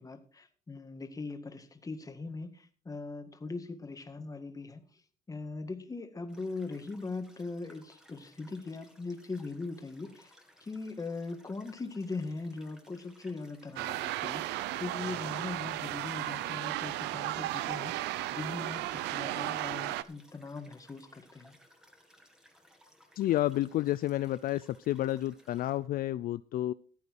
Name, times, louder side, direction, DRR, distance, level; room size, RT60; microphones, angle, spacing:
voice 1, 0.0-4.8 5.3-10.3 10.6-21.6, left 3 dB, 20° left, 7 dB, 1.8 m, -40 dB
sound 1, 6.3-25.8, equal, 5° right, 2.2 m, -61 dB
sound 2, 13.8-20.0, right 15 dB, 90° right, 0.6 m, -35 dB
voice 2, 23.2-26.7, left 14 dB, 60° left, 15 dB, 0.4 m, -30 dB
15.0 x 8.3 x 4.7 m, 0.43 s
cardioid pair, 110°, 17 cm